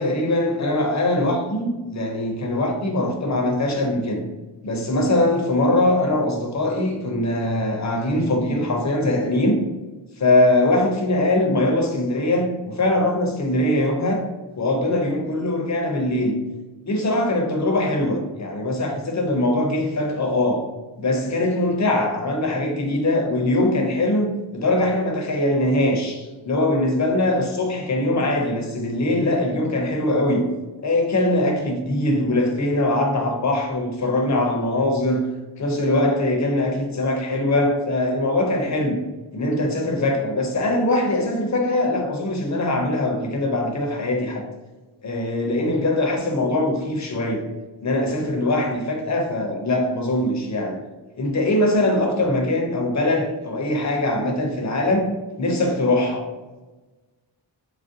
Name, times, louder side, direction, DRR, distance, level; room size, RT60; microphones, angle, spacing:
voice 1, 0.0-4.2 4.6-9.6 10.2-14.2 14.6-16.4 16.9-20.7 21.0-30.5 30.8-35.3 35.6-39.0 39.3-44.4 45.0-47.4 47.8-50.8 51.2-55.1 55.4-56.3, left 1 dB, 40° left, 2 dB, 0.5 m, -22 dB
3.1 x 2.5 x 2.6 m, 1.2 s
wide cardioid pair, 135°, 45 cm